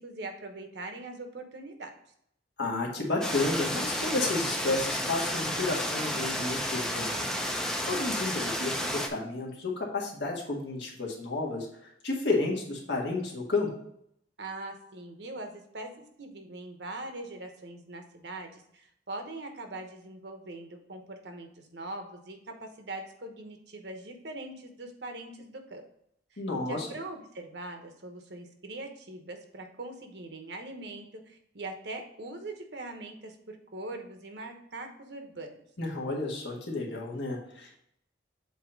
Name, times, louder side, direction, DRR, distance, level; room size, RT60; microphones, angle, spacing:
voice 1, 0.0-2.0 14.4-25.8 26.3-26.4 26.7-35.6, right 2 dB, 60° right, 5 dB, 1.0 m, -42 dB
voice 2, 2.6-7.3 7.9-13.7 26.4-26.9 35.8-37.8, left 3 dB, 65° left, -2 dB, 1.7 m, -31 dB
sound 1, 3.2-9.1, equal, 5° left, 0.6 m, -31 dB
7.8 x 2.9 x 5.2 m, 0.72 s
head